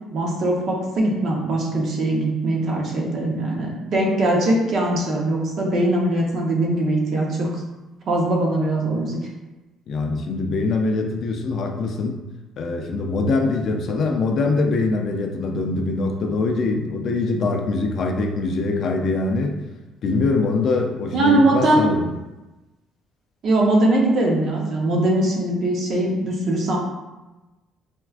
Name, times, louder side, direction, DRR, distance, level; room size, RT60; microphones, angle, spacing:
voice 1, 0.1-7.5 8.1-9.2 21.1-21.8 23.4-26.8, right 1 dB, 55° right, -1 dB, 0.7 m, -21 dB
voice 2, 9.9-12.2 12.6-19.6 20.0-22.1, left 3 dB, 50° left, 3 dB, 0.3 m, -23 dB
4.3 x 2.3 x 2.3 m, 1.1 s
cardioid pair, 135°, 0 cm